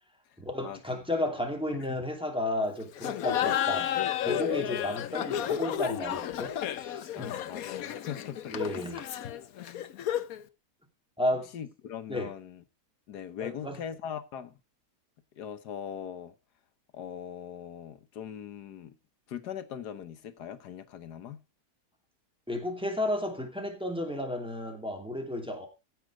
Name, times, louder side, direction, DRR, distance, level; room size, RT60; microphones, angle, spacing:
voice 1, 0.4-3.9 4.2-7.3 8.5-9.0 11.2-11.5 12.1-12.3 13.4-13.8 22.5-25.7, left 1 dB, 5° right, 2.7 m, -33 dB
Laughter, 3.0-10.4, left 10 dB, 65° left, 1.2 m, -32 dB
voice 2, 7.1-8.9 11.5-12.6 13.1-14.5 15.4-16.3 16.9-18.9 19.3-21.4, left 9 dB, 85° left, 1.6 m, -40 dB
15.5 x 6.4 x 4.8 m
omnidirectional pair, 1.7 m